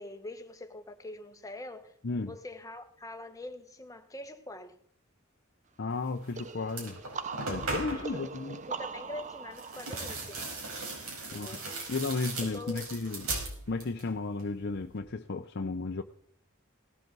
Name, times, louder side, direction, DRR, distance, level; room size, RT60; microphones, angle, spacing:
voice 1, 0.0-2.0 2.3-4.8 7.9-8.3 8.7-10.4 11.3-11.7 12.4-13.0, left 2 dB, 15° left, 1.2 m, -44 dB
voice 2, 5.8-7.0 7.5-8.6 11.3-11.6 11.9-13.3 13.7-16.0, left 3 dB, 50° left, 0.7 m, -34 dB
sound 1, 6.2-6.4 6.7-8.2 9.5-14.1 14.4-15.0, right 2 dB, 85° right, 5.2 m, -38 dB
sound 2, 6.3-11.9, right 5 dB, 35° right, 0.7 m, -42 dB
18.0 x 11.5 x 4.0 m
head